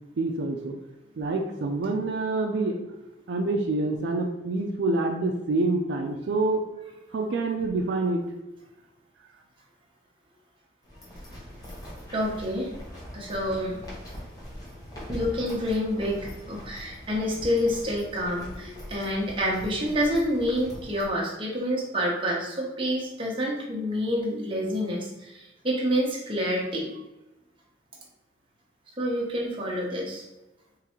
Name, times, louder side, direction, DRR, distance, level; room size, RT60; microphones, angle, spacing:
voice 1, 0.2-0.7 1.2-2.8 3.3-6.6 7.1-8.2, right 2 dB, 65° right, 2 dB, 0.4 m, -26 dB
sound 1, 10.8-21.1, equal, 20° left, 0.9 m, -42 dB
voice 2, 12.1-12.7 13.1-13.8 15.1-26.9 29.0-30.2, equal, 30° right, -3 dB, 0.8 m, -28 dB
3.6 x 3.2 x 3.0 m, 0.99 s
head